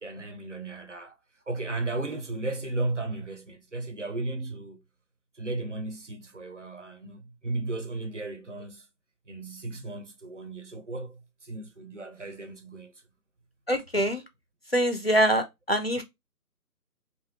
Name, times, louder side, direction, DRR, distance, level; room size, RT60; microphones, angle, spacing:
voice 1, 0.0-1.2 1.5-4.8 5.3-8.9 9.3-12.9, right 2 dB, 50° right, 0.6 m, -35 dB
voice 2, 13.7-14.2 14.7-16.0, equal, 40° left, 0.5 m, -24 dB
2.9 x 2.5 x 4.3 m
figure-of-eight pair, 165°, 49 cm